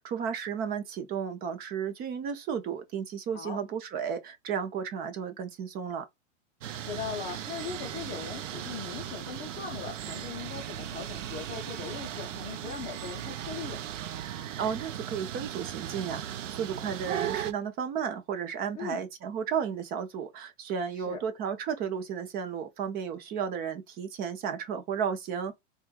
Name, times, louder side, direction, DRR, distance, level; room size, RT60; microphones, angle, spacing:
voice 1, 0.0-6.0 14.6-25.5, right 7 dB, 25° right, 0.7 m, -33 dB
sound 1, 6.6-17.5, right 10 dB, 85° right, 0.7 m, -37 dB
voice 2, 6.8-13.8 18.7-19.0 20.9-21.2, left 7 dB, 20° left, 0.6 m, -39 dB
4.3 x 2.4 x 2.3 m
hypercardioid pair, 140°, 37 cm